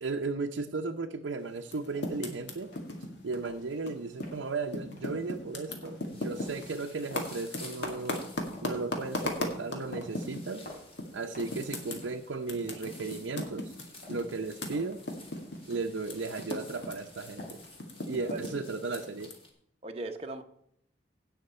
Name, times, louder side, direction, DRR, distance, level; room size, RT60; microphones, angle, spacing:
voice 1, 0.0-2.7 3.2-8.3 8.6-10.7 11.1-13.7 14.1-15.0 15.7-17.6 18.1-19.3, right 3 dB, 80° right, 2 dB, 0.7 m, -35 dB
Typing, 1.6-4.4 4.7-10.6 11.0-11.1 11.4-16.5 16.8-19.3, left 1 dB, 70° left, 2.0 m, -37 dB
sound 1, 1.8-17.8, left 1 dB, 50° left, 3.8 m, -54 dB
sound 2, 5.2-5.7 6.0-19.5, left 2 dB, 30° left, 2.1 m, -51 dB
voice 2, 18.1-18.5 19.8-20.4, right 2 dB, 30° right, 4 dB, 0.8 m, -38 dB
17.0 x 5.8 x 4.3 m, 0.73 s
head